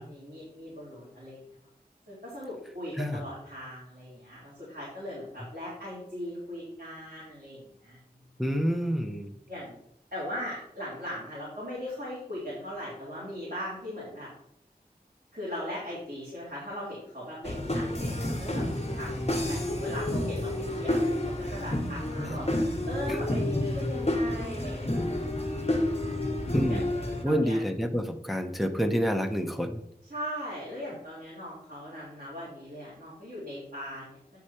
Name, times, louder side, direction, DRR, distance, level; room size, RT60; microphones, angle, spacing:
voice 1, 0.0-1.4 2.1-8.0 9.5-9.8 10.1-14.3 15.3-25.5 26.7-26.9 27.2-27.6 30.0-34.2, equal, 60° right, -9 dB, 3.7 m, -39 dB
voice 2, 8.4-9.3 22.2-22.4 23.1-23.2 26.5-26.9 27.2-29.8, equal, ahead, 5 dB, 0.9 m, -28 dB
sound 1, 17.4-27.2, left 1 dB, 40° left, 1.4 m, -30 dB
9.6 x 4.9 x 4.4 m, 0.72 s
wide cardioid pair, 50°, 17 cm